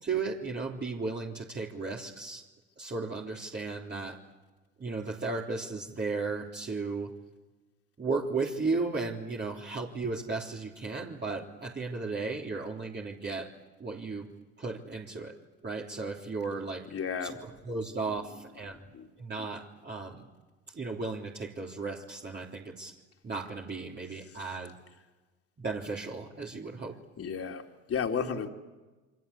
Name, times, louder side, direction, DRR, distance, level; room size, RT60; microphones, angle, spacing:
voice 1, 0.0-2.4 2.8-4.2 4.8-7.1 8.0-13.5 13.8-14.3 14.6-15.3 15.6-16.9 17.2-18.9 19.2-20.3 20.7-23.0 23.2-24.8 25.6-27.0, right 3 dB, 30° right, 3.6 m, -35 dB
voice 2, 16.9-17.4 18.9-19.1 27.2-27.6 27.9-28.5, left 6 dB, 45° left, 3.0 m, -32 dB
28.5 x 24.5 x 8.4 m
hypercardioid pair, 75°, 34 cm